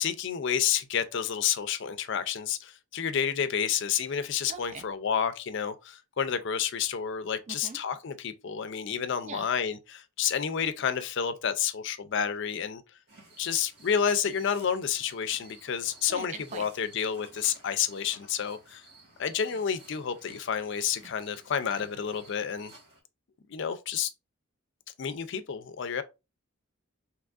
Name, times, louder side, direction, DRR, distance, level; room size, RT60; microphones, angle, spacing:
voice 1, 0.0-12.8 13.4-18.8 19.2-22.7 23.5-24.1 25.0-26.0, left 8 dB, 60° left, 0.4 m, -30 dB
voice 2, 4.5-4.8 7.5-7.8 9.2-9.5 16.1-16.6, right 5 dB, 35° right, 0.3 m, -41 dB
sound 1, 13.1-23.0, right 2 dB, 50° right, 1.5 m, -54 dB
3.5 x 2.9 x 2.4 m
head